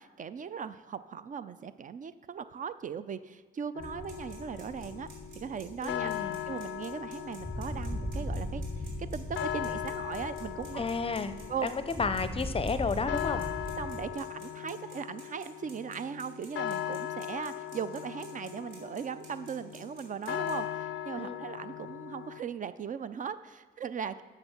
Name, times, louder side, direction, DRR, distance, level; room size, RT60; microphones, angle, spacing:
voice 1, 0.0-5.1 5.4-8.6 9.0-10.8 11.5-11.7 13.8-24.2, right 7 dB, 40° right, 13 dB, 0.4 m, -38 dB
sound 1, 3.8-22.4, left 11 dB, 75° left, 0.4 m, -39 dB
sound 2, 3.8-14.1, left 1 dB, ahead, 1.3 m, -39 dB
sound 3, 3.8-20.5, right 4 dB, 75° right, 3.0 m, -54 dB
voice 2, 5.8-6.4 10.7-11.4 11.6-13.4 21.2-21.4, left 4 dB, 30° left, 12 dB, 0.6 m, -32 dB
8.0 x 6.0 x 5.8 m, 1.4 s
cardioid pair, 90°, 20 cm